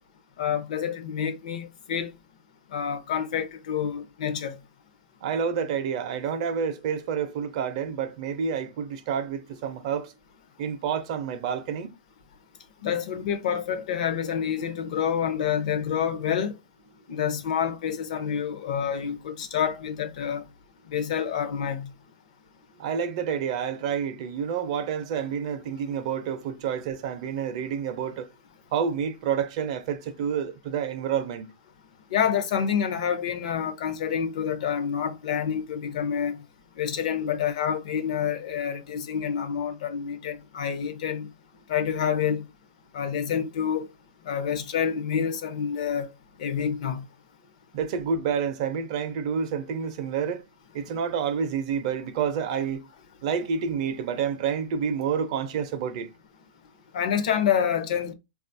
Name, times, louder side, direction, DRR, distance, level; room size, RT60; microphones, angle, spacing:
voice 1, 0.4-2.1 2.7-4.6 12.8-16.5 17.1-20.4 20.9-21.9 32.1-36.4 36.8-41.3 41.7-42.4 42.9-43.9 44.2-46.1 46.4-47.0 53.4-53.5 56.9-58.1, left 8 dB, 55° left, 0.6 m, -28 dB
voice 2, 5.2-10.1 10.6-11.9 22.8-28.2 28.7-31.5 47.7-50.4 50.7-52.8 53.2-56.1, right 7 dB, 45° right, 0.5 m, -29 dB
3.9 x 2.3 x 2.5 m
hypercardioid pair, 160°, 5 cm